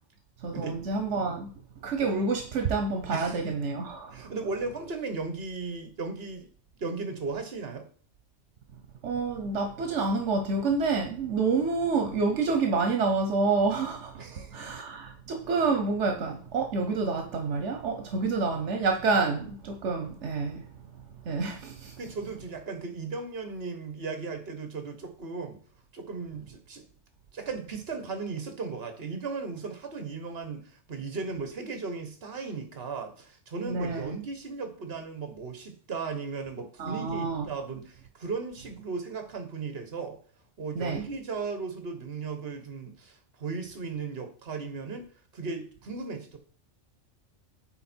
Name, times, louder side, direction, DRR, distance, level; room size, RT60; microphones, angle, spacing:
voice 1, 0.4-1.5 1.8-4.3 9.0-20.7 21.2-22.0 33.6-34.1 36.8-37.5 40.7-41.0, right 4 dB, 80° right, 1.2 m, -28 dB
voice 2, 4.1-6.5 6.8-7.9 14.2-14.6 22.0-25.6 25.9-26.8 27.3-40.2 40.6-45.1 45.3-46.4, right 4 dB, 60° right, 1.5 m, -36 dB
8.9 x 3.7 x 4.4 m
omnidirectional pair, 1.2 m